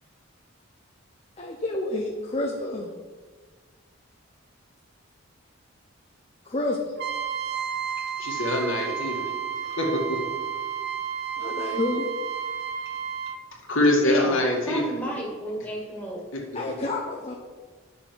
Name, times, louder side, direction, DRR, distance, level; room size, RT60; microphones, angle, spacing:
voice 1, 1.4-2.9 6.5-6.8 11.4-12.1 16.5-17.4, left 2 dB, 30° left, 0 dB, 0.7 m, -29 dB
Trumpet, 7.0-13.4, right 8 dB, 50° right, 0.6 m, -31 dB
voice 2, 8.2-10.2 13.7-15.0 16.3-16.4, left 1 dB, 70° left, -2 dB, 2.0 m, -24 dB
voice 3, 14.0-16.2, right 1 dB, 5° left, -4 dB, 1.9 m, -33 dB
10.0 x 6.3 x 4.5 m, 1.4 s
head